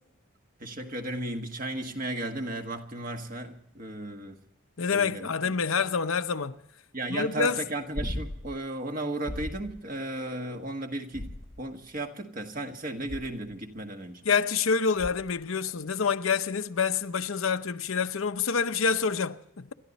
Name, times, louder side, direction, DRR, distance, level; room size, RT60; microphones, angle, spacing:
voice 1, 0.6-4.4 4.9-5.5 6.9-14.2, right 1 dB, 40° right, 1.7 m, -35 dB
voice 2, 4.8-6.6 7.1-7.6 14.2-19.7, left 5 dB, 75° left, 0.8 m, -27 dB
sound 1, 7.9-8.6 9.3-9.8 11.1-11.8 13.1-13.5 15.0-15.4 17.8-17.9, left 1 dB, 25° left, 0.8 m, -37 dB
28.0 x 12.5 x 4.2 m
head